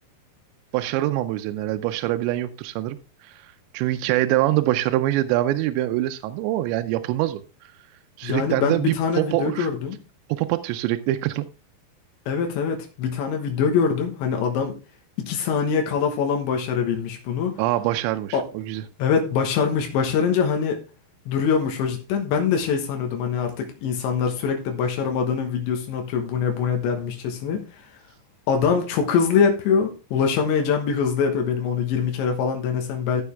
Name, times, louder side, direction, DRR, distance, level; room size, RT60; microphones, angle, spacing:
voice 1, 0.7-3.0 3.2-7.4 8.2-9.7 10.3-11.4 17.6-18.8, right 15 dB, 85° right, 2.9 m, -24 dB
voice 2, 8.2-10.0 12.3-14.8 15.2-17.6 18.3-18.5 19.0-20.8 21.3-27.6 28.5-33.2, left 6 dB, 85° left, 3.6 m, -23 dB
13.5 x 6.7 x 3.5 m
omnidirectional pair, 5.1 m